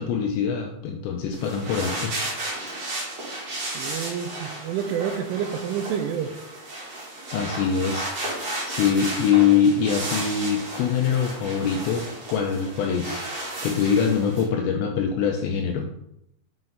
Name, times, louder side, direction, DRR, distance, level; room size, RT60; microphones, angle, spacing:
voice 1, 0.0-2.1 7.3-8.1 8.6-12.0 12.3-13.2 13.6-15.9, left 7 dB, 80° left, 2 dB, 2.7 m, -23 dB
sound 1, 1.3-14.5, right 1 dB, 40° right, 3.0 m, -33 dB
voice 2, 3.7-6.3, right 8 dB, 80° right, 6 dB, 3.0 m, -28 dB
7.6 x 5.9 x 3.9 m, 0.78 s
omnidirectional pair, 5.8 m